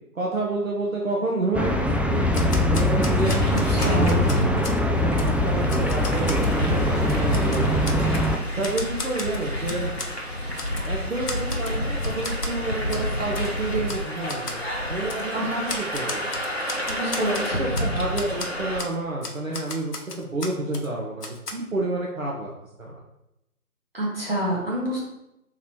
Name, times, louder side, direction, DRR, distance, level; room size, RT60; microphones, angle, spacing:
voice 1, 0.1-4.5 4.9-8.1 8.6-9.9 10.8-14.6 14.9-16.4 17.6-22.5 22.8-23.0, right 2 dB, 60° right, -3 dB, 0.9 m, -29 dB
sound 1, 1.5-8.4, left 1 dB, 5° right, 0.3 m, -22 dB
Typewriter, 2.3-4.8 5.2-5.3 5.7-6.5 7.0-8.3 8.6-10.1 10.6-10.9 11.3-11.8 12.0-12.5 12.9-13.1 13.4-13.5 13.9-14.0 14.3-14.6 15.1-15.2 15.7-17.9 18.2-18.5 18.8-18.9 19.2-20.9 21.2-21.5, left 3 dB, 80° left, 0.9 m, -35 dB
sound 2, 2.9-18.8, left 1 dB, 45° left, 0.7 m, -30 dB
voice 2, 3.5-4.2 15.3-15.5 16.9-17.6 23.9-25.0, right 1 dB, 40° right, -6 dB, 1.5 m, -27 dB
3.9 x 3.0 x 4.3 m, 0.87 s
figure-of-eight pair, 175°, 46 cm